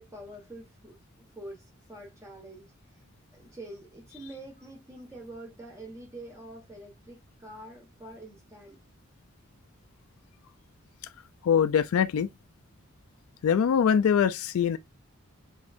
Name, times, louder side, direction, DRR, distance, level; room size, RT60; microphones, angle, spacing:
voice 1, 0.0-2.7 3.3-8.8, right 1 dB, 15° right, 1.3 m, -46 dB
voice 2, 11.4-12.3 13.4-14.8, left 7 dB, 85° left, 0.3 m, -23 dB
3.6 x 3.5 x 2.5 m
head